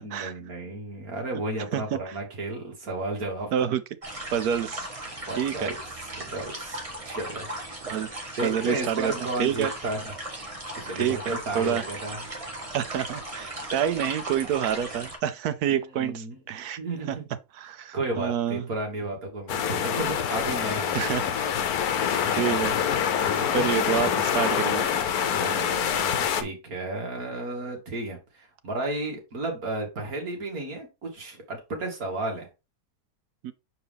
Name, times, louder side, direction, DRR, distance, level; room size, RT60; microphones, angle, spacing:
voice 1, 0.0-3.7 5.3-5.8 6.2-7.5 8.4-10.1 10.8-12.2 15.7-16.4 16.8-17.2 17.9-21.2 23.3-23.7 25.3-32.5, right 2 dB, 70° right, 2.4 m, -33 dB
voice 2, 1.7-2.2 3.5-3.8 4.3-4.9 5.4-5.7 7.8-8.1 8.4-9.7 11.0-11.8 12.7-16.8 17.1-17.2 17.5-18.7 20.9-21.3 22.3-22.7 23.5-24.9 33.4-33.5, right 9 dB, 85° right, 1.2 m, -28 dB
sound 1, 4.0-15.2, right 1 dB, 25° right, 1.5 m, -37 dB
sound 2, 19.5-26.4, left 8 dB, 85° left, 1.2 m, -26 dB
6.6 x 4.6 x 3.5 m
omnidirectional pair, 1.6 m